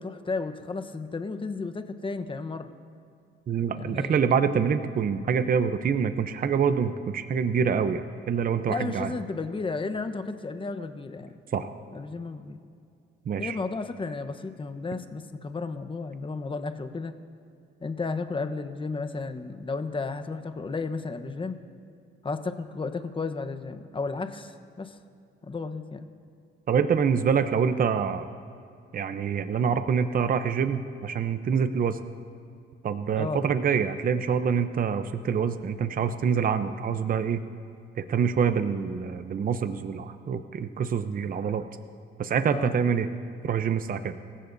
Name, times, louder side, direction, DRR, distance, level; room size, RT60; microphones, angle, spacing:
voice 1, 0.0-2.7 3.7-4.3 8.7-11.4 11.9-12.6 13.4-17.2 17.8-21.6 22.2-25.0 25.4-26.1 33.1-33.4 42.5-42.7, left 4 dB, 25° left, 9 dB, 1.0 m, -33 dB
voice 2, 3.5-9.1 11.5-11.7 13.3-13.6 26.7-28.3 28.9-32.0 32.8-37.4 38.0-41.7 42.2-43.1 43.4-44.1, right 6 dB, 45° right, 10 dB, 0.7 m, -26 dB
26.0 x 15.5 x 2.7 m, 2.5 s
cardioid pair, 90°, 20 cm